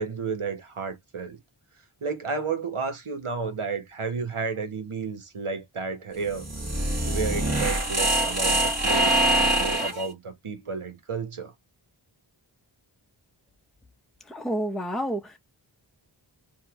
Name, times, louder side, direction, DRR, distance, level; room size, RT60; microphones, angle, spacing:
voice 1, 0.0-1.4 2.0-6.5 7.0-11.5, right 4 dB, 85° right, 1.3 m, -32 dB
sound 1, 6.2-10.1, right 1 dB, 30° right, 1.6 m, -24 dB
voice 2, 14.2-15.4, right 1 dB, ahead, 0.8 m, -29 dB
4.9 x 2.8 x 3.5 m
wide cardioid pair, 50°, 49 cm